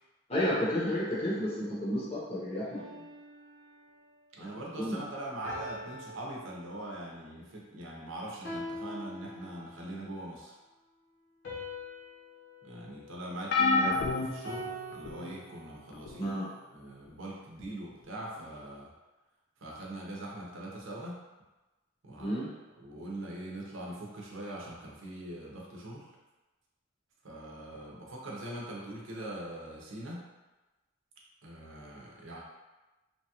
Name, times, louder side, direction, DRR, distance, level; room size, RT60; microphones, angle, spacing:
voice 1, 0.3-3.1 4.4-4.5 4.8-5.0 13.7-13.9 16.1-16.5 22.2-22.5, left 1 dB, 30° left, -9 dB, 0.7 m, -32 dB
sound 1, 2.7-4.0 5.4-7.1 8.4-9.9 11.4-13.8 14.4-15.7, left 1 dB, 80° left, 0.8 m, -44 dB
voice 2, 4.3-10.5 12.6-16.3 16.7-18.9 19.6-21.2 22.0-22.4 22.8-26.1 27.2-30.3 31.4-32.4, right 1 dB, 70° right, -3 dB, 0.7 m, -42 dB
sound 2, 13.5-15.3 16.0-16.3 17.6-17.7, left 3 dB, 55° left, 0.3 m, -29 dB
3.0 x 2.3 x 2.8 m, 1.1 s
head